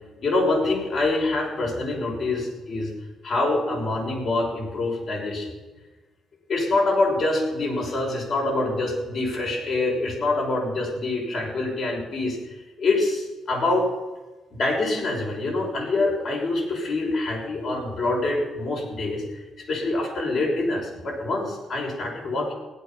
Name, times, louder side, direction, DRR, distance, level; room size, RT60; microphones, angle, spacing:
voice 1, 0.2-2.9 3.2-5.5 6.5-12.4 12.8-13.9 14.5-19.2 19.7-22.5, left 2 dB, 60° left, -1 dB, 6.1 m, -25 dB
16.5 x 11.5 x 5.9 m, 1.2 s
cardioid pair, 90°, 0 cm